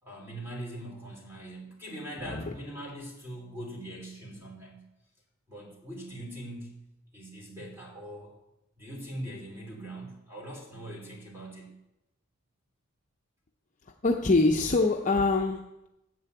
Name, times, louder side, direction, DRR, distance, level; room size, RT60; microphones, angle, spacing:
voice 1, 0.0-4.8 5.5-6.8 7.1-8.3 8.8-11.8, right 1 dB, 10° right, -1 dB, 3.3 m, -42 dB
voice 2, 14.0-15.9, left 3 dB, 35° left, 2 dB, 0.6 m, -25 dB
9.5 x 7.6 x 8.1 m, 0.91 s
head